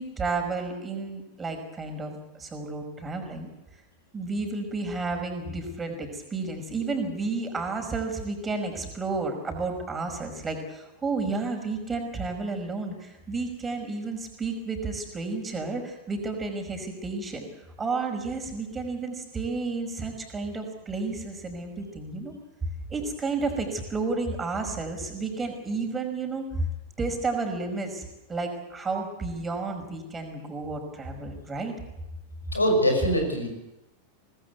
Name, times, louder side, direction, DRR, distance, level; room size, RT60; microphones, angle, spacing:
voice 1, 0.0-3.5 4.1-17.5 17.8-22.3 22.9-26.7 27.0-31.7, right 3 dB, 15° right, 4 dB, 5.3 m, -31 dB
voice 2, 32.5-33.5, equal, 80° left, 4 dB, 5.9 m, -23 dB
24.5 x 18.5 x 8.2 m, 0.96 s
figure-of-eight pair, 90°, 0 cm